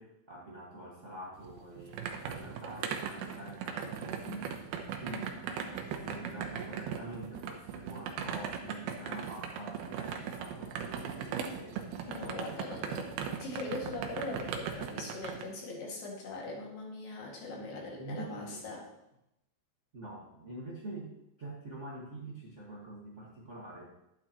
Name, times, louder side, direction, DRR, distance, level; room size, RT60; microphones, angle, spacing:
voice 1, 0.0-4.7 5.0-12.1 12.4-12.9 18.0-18.7 19.9-21.1 21.4-23.9, right 1 dB, 60° right, -5 dB, 0.7 m, -46 dB
sound 1, 1.4-15.4, right 7 dB, 85° right, 2.8 m, -39 dB
voice 2, 12.1-18.9, left 2 dB, 70° left, -2 dB, 3.8 m, -41 dB
11.5 x 9.5 x 3.0 m, 0.84 s
omnidirectional pair, 4.3 m